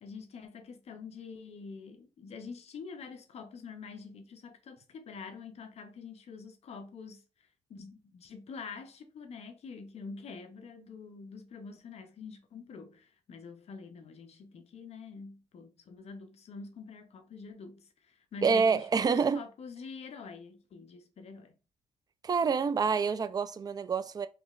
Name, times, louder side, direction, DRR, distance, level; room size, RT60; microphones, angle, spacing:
voice 1, 0.0-21.5, left 4 dB, 55° left, 0.6 m, -46 dB
voice 2, 18.4-19.4 22.2-24.3, right 5 dB, 30° right, 0.3 m, -27 dB
3.7 x 3.0 x 2.4 m
cardioid pair, 105°, 13 cm